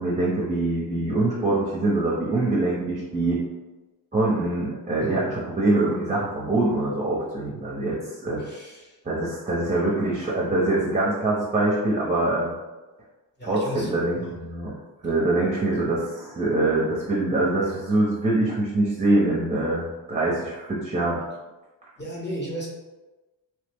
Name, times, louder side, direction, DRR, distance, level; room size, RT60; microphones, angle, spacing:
voice 1, 0.0-3.4 4.1-8.5 9.0-12.5 13.4-14.7 15.0-21.2, right 2 dB, 20° right, -5 dB, 0.6 m, -24 dB
voice 2, 8.4-9.0 13.4-13.9 14.2-14.3 22.0-22.7, equal, 25° left, -3 dB, 0.8 m, -35 dB
3.1 x 2.0 x 3.4 m, 1.1 s
cardioid pair, 105°, 41 cm